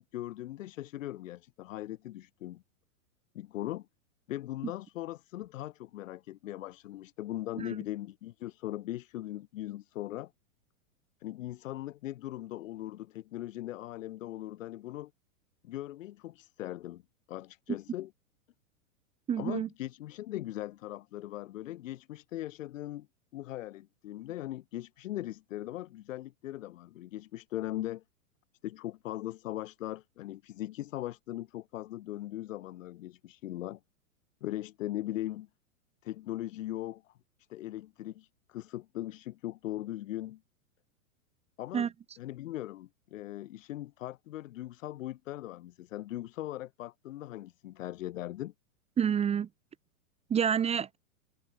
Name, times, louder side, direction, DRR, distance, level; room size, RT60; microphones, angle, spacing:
voice 1, 0.0-2.6 3.3-3.9 4.3-10.3 11.2-15.1 15.6-17.0 17.3-18.1 19.4-23.1 23.3-28.0 28.6-33.8 34.4-35.5 36.0-37.2 37.5-40.4 41.6-41.9 42.2-48.5, left 14 dB, 60° left, 6.1 m, -39 dB
voice 2, 19.3-19.7 41.7-41.9 49.0-49.5 50.3-51.0, right 8 dB, 15° right, 1.1 m, -28 dB
hypercardioid pair, 130°, 42 cm